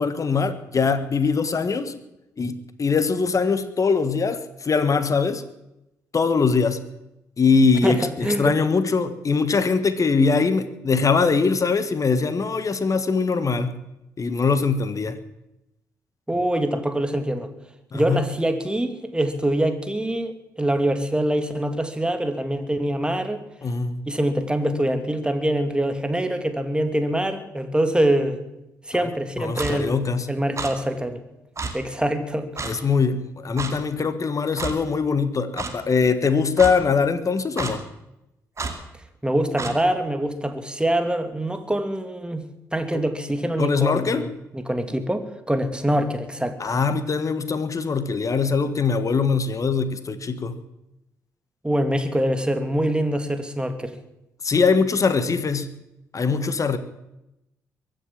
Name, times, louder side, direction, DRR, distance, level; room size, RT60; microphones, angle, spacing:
voice 1, 0.0-1.9 2.4-2.5 2.8-5.4 6.1-6.8 7.4-13.8 14.2-15.2 17.9-18.2 23.6-24.0 28.9-29.1 29.4-30.3 32.6-37.8 43.6-44.3 46.6-50.6 54.4-55.7 56.1-56.8, left 5 dB, 40° left, 12 dB, 1.5 m, -22 dB
voice 2, 7.8-8.6 16.3-17.5 17.9-23.4 24.1-28.4 28.9-30.0 30.3-31.2 31.7-32.5 39.2-42.4 42.7-46.6 51.6-53.9, right 1 dB, 10° right, 8 dB, 2.5 m, -24 dB
Clock, 29.6-29.7 30.6-30.7 31.6-31.7 32.6-32.7 33.6-33.7 34.6-34.7 35.6-35.7 36.6-36.7 37.6-37.7 38.6-38.7 39.6-39.7, right 4 dB, 35° right, 2.5 m, -29 dB
23.0 x 7.8 x 7.5 m, 0.89 s
figure-of-eight pair, 40°, 9 cm